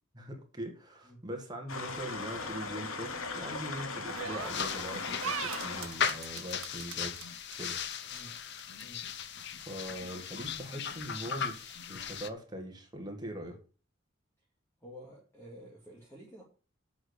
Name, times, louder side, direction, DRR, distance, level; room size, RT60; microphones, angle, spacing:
voice 1, 0.1-7.8 9.7-13.6, equal, 20° right, 1.8 m, -42 dB
sound 1, 1.7-6.0, left 4 dB, 85° left, 1.2 m, -38 dB
sound 2, 4.1-4.7 5.2-7.2 7.5-7.6 7.9-8.8, right 8 dB, 85° right, 0.8 m, -39 dB
sound 3, 4.4-12.3, left 7 dB, 55° left, 0.7 m, -37 dB
voice 2, 14.8-16.4, equal, 10° left, 2.2 m, -50 dB
7.9 x 6.2 x 6.6 m
head